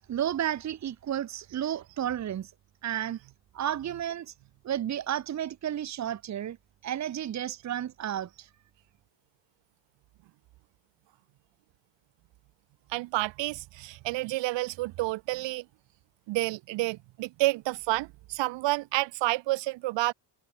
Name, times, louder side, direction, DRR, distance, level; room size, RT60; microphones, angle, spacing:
voice 1, 0.1-2.5 2.8-3.2 3.5-4.3 4.6-6.6 6.8-8.5, right 10 dB, 40° right, 2.3 m, -32 dB
voice 2, 12.9-15.7 16.3-20.1, right 19 dB, 70° right, 5.3 m, -29 dB
cardioid pair, 150°, 44 cm